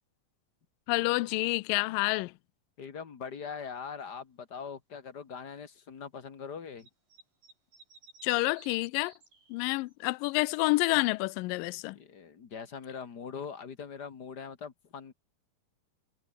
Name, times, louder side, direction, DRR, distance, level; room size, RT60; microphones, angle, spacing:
voice 1, 0.9-2.3 8.2-9.1 9.5-12.0, left 23 dB, 80° left, 2.1 m, -28 dB
voice 2, 2.8-6.9 11.9-15.1, left 6 dB, 40° left, 1.5 m, -42 dB
sound 1, 6.8-9.9, right 4 dB, 65° right, 9.4 m, -56 dB
omnidirectional pair, 4.3 m